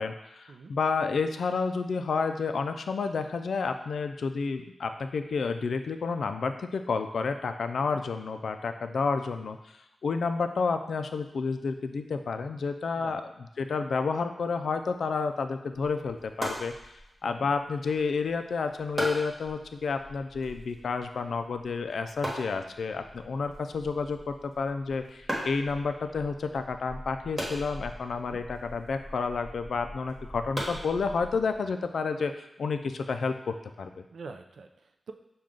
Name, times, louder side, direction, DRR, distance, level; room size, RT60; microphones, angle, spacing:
voice 1, 0.0-9.6 10.0-13.2 13.6-16.9 17.2-34.0, left 4 dB, 75° left, 8 dB, 0.3 m, -30 dB
sound 1, 15.7-31.6, equal, 20° right, 1.2 m, -40 dB
voice 2, 34.1-35.1, right 4 dB, 75° right, 5 dB, 0.4 m, -46 dB
6.3 x 2.3 x 3.7 m, 0.87 s
wide cardioid pair, 160°, 0 cm